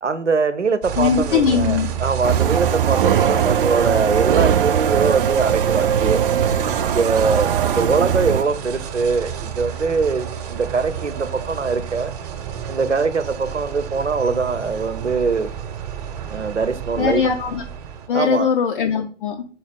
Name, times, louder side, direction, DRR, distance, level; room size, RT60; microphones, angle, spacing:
voice 1, 0.0-6.2 6.8-12.1 12.7-15.5 16.3-17.3 18.1-18.5, right 4 dB, 90° right, 10 dB, 0.7 m, -22 dB
sound 1, 0.8-18.1, right 9 dB, 35° right, 0.9 m, -30 dB
voice 2, 1.0-1.9 17.0-17.6 18.1-19.4, left 6 dB, 50° left, 3 dB, 0.6 m, -20 dB
sound 2, 2.2-8.4, right 9 dB, 50° right, 0.5 m, -20 dB
sound 3, 7.8-9.6, left 1 dB, 5° right, 0.3 m, -37 dB
4.7 x 4.2 x 5.0 m, 0.42 s
figure-of-eight pair, 115°, 34 cm